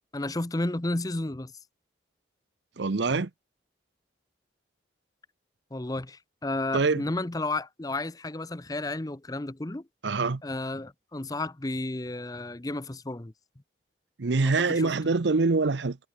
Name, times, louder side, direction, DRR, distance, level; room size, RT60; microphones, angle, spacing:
voice 1, 0.1-1.5 3.1-3.2 5.7-9.9 10.4-13.3 14.6-14.9, left 2 dB, 20° left, 0.7 m, -32 dB
voice 2, 2.8-3.3 6.7-7.0 10.0-10.4 14.2-16.0, right 3 dB, 70° right, 0.7 m, -24 dB
head